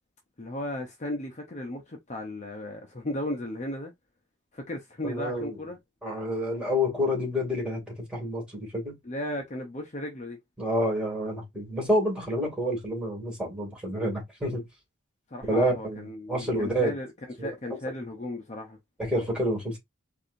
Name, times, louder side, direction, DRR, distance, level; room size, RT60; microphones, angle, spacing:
voice 1, 0.4-3.9 4.5-5.8 9.0-10.4 15.3-17.1 17.4-18.8, left 1 dB, 35° left, 0.7 m, -35 dB
voice 2, 5.0-5.6 6.0-8.9 10.6-14.6 15.5-16.0 16.3-16.9 17.4-17.5 19.0-19.8, equal, 5° right, 2.4 m, -28 dB
4.7 x 2.6 x 2.6 m
head